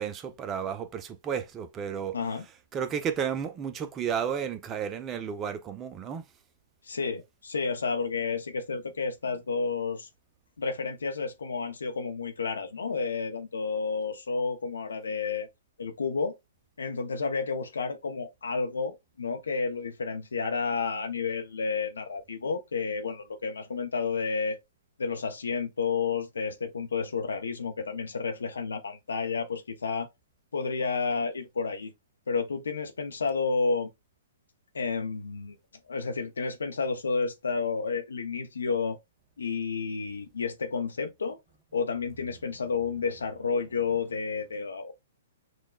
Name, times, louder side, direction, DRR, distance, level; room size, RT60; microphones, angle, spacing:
voice 1, 0.0-2.2 2.7-6.2, right 8 dB, 25° right, 0.5 m, -32 dB
voice 2, 2.1-2.4 6.8-10.1 10.6-15.5 15.8-16.3 16.8-24.6 25.0-30.1 30.5-31.9 32.3-33.9 34.7-35.6 35.9-39.0 39.4-41.4 41.7-44.9, left 5 dB, 80° left, 0.6 m, -31 dB
6.1 x 2.1 x 2.3 m
hypercardioid pair, 125°, 0 cm